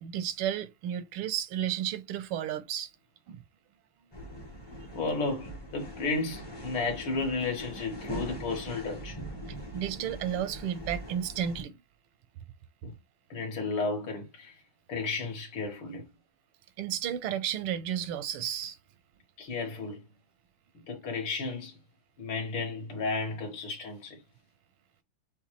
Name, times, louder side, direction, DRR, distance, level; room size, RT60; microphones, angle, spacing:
voice 1, 0.0-2.9 3.3-3.4 9.5-11.8 16.8-18.8, right 10 dB, 85° right, 1.5 m, -33 dB
sound 1, 4.1-11.6, equal, 30° left, 0.4 m, -42 dB
voice 2, 5.0-9.2 12.8-12.9 13.3-14.5 14.9-16.0 19.4-20.0 20.9-21.7 22.2-24.2, left 3 dB, 70° left, 2.4 m, -33 dB
6.8 x 2.3 x 3.0 m
omnidirectional pair, 2.4 m